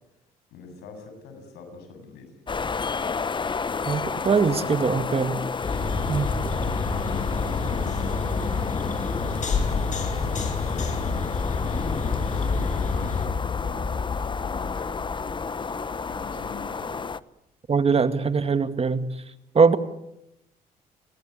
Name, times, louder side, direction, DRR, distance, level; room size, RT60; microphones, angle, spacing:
voice 1, 0.5-2.3 7.0-8.3 8.9-15.7 16.1-17.1, left 3 dB, 85° left, 6 dB, 7.5 m, -43 dB
sound 1, 2.5-17.2, left 5 dB, 30° left, 0.9 m, -30 dB
voice 2, 3.8-5.4 6.1-6.3 17.7-19.1 19.5-19.8, right 5 dB, 35° right, 10 dB, 2.1 m, -22 dB
sound 2, 5.6-13.3, left 4 dB, 50° left, 6.8 m, -28 dB
29.5 x 20.0 x 8.3 m, 0.84 s
supercardioid pair, 75°, 17 cm